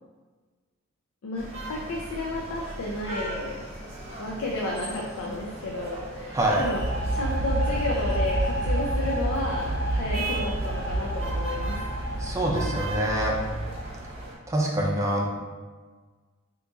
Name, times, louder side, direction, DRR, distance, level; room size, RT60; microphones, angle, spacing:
voice 1, 1.2-3.7 4.2-6.8 7.1-11.8, left 2 dB, 90° left, -2 dB, 0.4 m, -32 dB
sound 1, 1.4-14.4, right 2 dB, 35° right, 0.9 m, -39 dB
voice 2, 6.3-6.6 12.2-13.3 14.5-15.3, right 1 dB, 15° right, -2 dB, 0.5 m, -25 dB
sound 2, 6.5-14.2, right 1 dB, 75° right, 0.6 m, -29 dB
3.4 x 2.9 x 2.6 m, 1.4 s
head